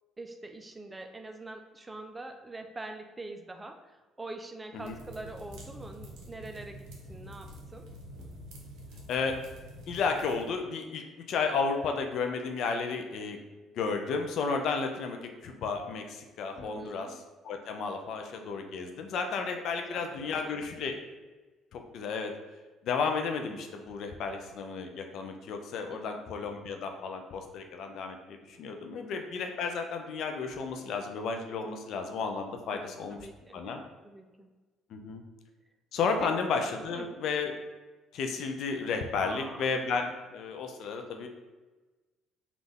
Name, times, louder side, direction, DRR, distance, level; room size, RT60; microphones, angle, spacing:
voice 1, 0.2-3.9 4.2-7.9 16.5-17.2 19.9-20.6 25.9-26.2 28.6-29.1 32.7-33.6 34.0-34.5 36.2-36.3 36.9-37.1 39.2-39.7, right 2 dB, 20° right, 5 dB, 0.4 m, -44 dB
sound 1, 4.8-10.5, equal, 65° right, 0.7 m, -47 dB
voice 2, 9.1-9.4 9.9-13.4 13.8-17.2 17.4-21.0 21.7-22.3 22.8-33.2 33.5-33.8 34.9-35.2 35.9-37.5 38.1-41.3, left 5 dB, 60° left, 4 dB, 0.4 m, -33 dB
3.5 x 2.4 x 3.4 m, 1.2 s
hypercardioid pair, 50°, 0 cm